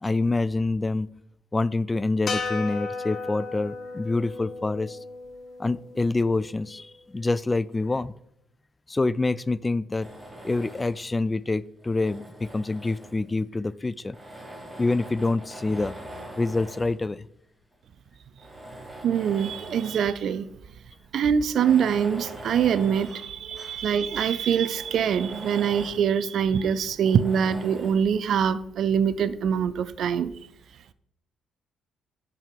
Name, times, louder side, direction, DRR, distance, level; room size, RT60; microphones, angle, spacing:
voice 1, 0.0-1.1 1.5-5.0 5.6-8.1 8.9-10.1 10.4-14.2 14.8-15.9 16.3-17.2, left 3 dB, 25° left, 0.4 m, -26 dB
sound 1, 2.3-6.6, left 4 dB, 50° left, 1.2 m, -35 dB
Tools, 10.0-11.1 11.8-13.4 14.1-17.0 17.7-17.8 18.3-20.1 20.5-20.6 21.4-23.9 24.3-24.4 24.7-26.1 27.1-28.1, right 1 dB, 10° right, 2.9 m, -43 dB
voice 2, 19.0-20.5 21.1-30.3, right 7 dB, 60° right, 0.5 m, -24 dB
10.5 x 4.8 x 5.2 m
hypercardioid pair, 50°, 0 cm